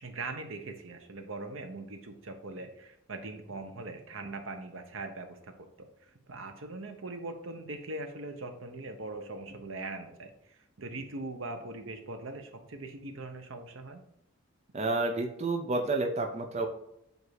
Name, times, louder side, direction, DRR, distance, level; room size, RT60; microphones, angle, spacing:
voice 1, 0.0-5.9 6.3-10.3 10.8-14.0, right 2 dB, 75° right, 6 dB, 0.9 m, -41 dB
voice 2, 14.7-16.7, right 2 dB, 30° right, 3 dB, 0.6 m, -30 dB
8.0 x 2.7 x 4.6 m, 0.80 s
head